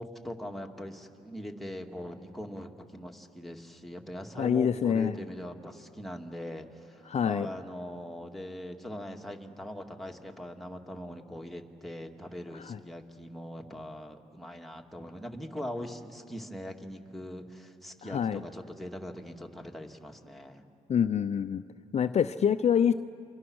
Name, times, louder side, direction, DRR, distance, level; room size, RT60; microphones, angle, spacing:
voice 1, 0.0-20.6, equal, ahead, 2 dB, 2.1 m, -41 dB
voice 2, 4.4-5.2 7.1-7.5 12.5-12.8 18.0-18.4 20.9-21.6 21.9-22.9, left 8 dB, 50° left, 11 dB, 0.6 m, -26 dB
28.5 x 24.5 x 6.3 m, 2.4 s
cardioid pair, 85°, 14 cm